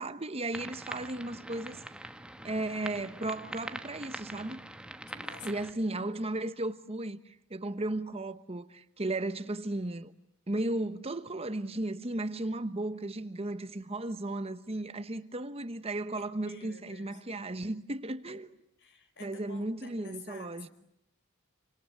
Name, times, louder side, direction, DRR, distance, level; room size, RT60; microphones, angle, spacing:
voice 1, 0.0-1.8 2.4-4.6 5.4-10.1 10.5-18.5 19.2-20.7, right 2 dB, 25° right, 1.1 m, -35 dB
sound 1, 0.5-5.7, right 1 dB, 5° right, 1.1 m, -43 dB
voice 2, 5.1-5.8 16.2-17.2 18.8-20.7, left 4 dB, 55° left, 4.8 m, -51 dB
29.0 x 25.5 x 7.8 m
head